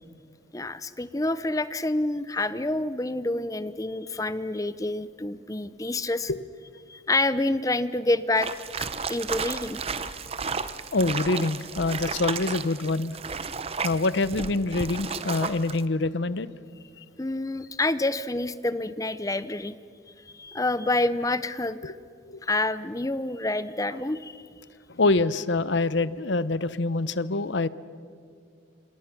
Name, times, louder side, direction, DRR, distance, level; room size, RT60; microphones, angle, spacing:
voice 1, 0.5-6.3 6.9-8.5 8.8-9.8 17.2-19.7 20.3-21.9 22.4-24.4, left 2 dB, 15° left, 14 dB, 0.6 m, -28 dB
sound 1, 8.4-15.8, right 5 dB, 30° right, 0.8 m, -33 dB
voice 2, 10.9-13.2 13.8-16.5 17.0-17.1 21.8-21.9 22.3-22.4 23.9-24.0 24.9-27.7, left 2 dB, 70° left, 16 dB, 0.8 m, -25 dB
28.5 x 26.5 x 6.1 m, 2.3 s
head